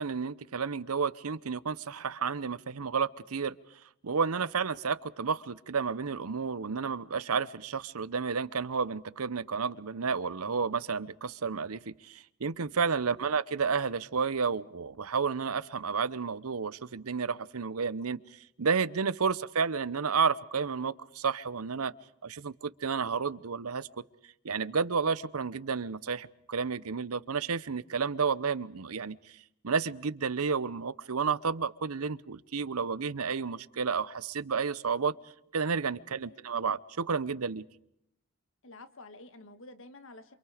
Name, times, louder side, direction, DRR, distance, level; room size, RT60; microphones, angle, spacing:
voice 1, 0.0-3.5 4.0-18.2 18.6-21.9 22.2-23.9 24.4-29.2 29.6-35.1 35.5-37.6, right 5 dB, 90° right, 0.8 m, -31 dB
voice 2, 38.6-40.4, left 2 dB, 60° left, 1.7 m, -50 dB
28.0 x 26.5 x 5.0 m
head